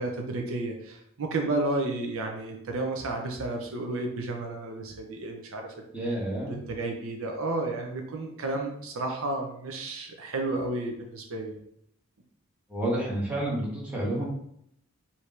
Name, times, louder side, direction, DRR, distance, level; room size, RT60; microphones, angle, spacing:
voice 1, 0.0-5.7 6.5-11.6, right 2 dB, 65° right, 2 dB, 0.7 m, -32 dB
voice 2, 5.9-6.6 12.7-14.3, right 1 dB, 5° right, -5 dB, 1.4 m, -29 dB
4.8 x 2.8 x 3.3 m, 0.73 s
head